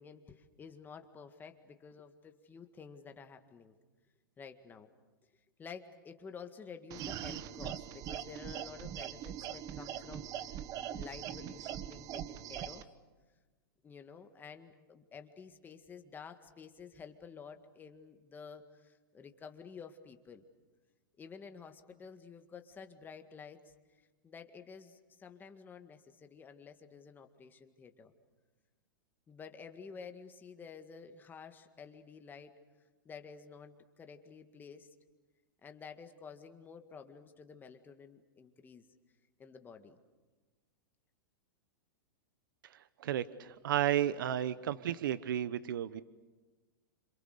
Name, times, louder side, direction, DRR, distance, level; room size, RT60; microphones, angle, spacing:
voice 1, 0.0-3.8 4.4-4.9 5.6-12.8 13.8-20.4 21.2-23.7 24.2-28.1 29.3-32.6 33.1-34.9 35.6-38.9 39.4-40.0, left 6 dB, 15° left, 6 dB, 2.0 m, -51 dB
sound 1, 6.9-12.8, right 10 dB, 35° right, 1.1 m, -42 dB
voice 2, 43.0-46.0, right 11 dB, 75° right, 16 dB, 0.9 m, -33 dB
28.0 x 27.0 x 6.7 m, 1.3 s
hypercardioid pair, 135°, 11 cm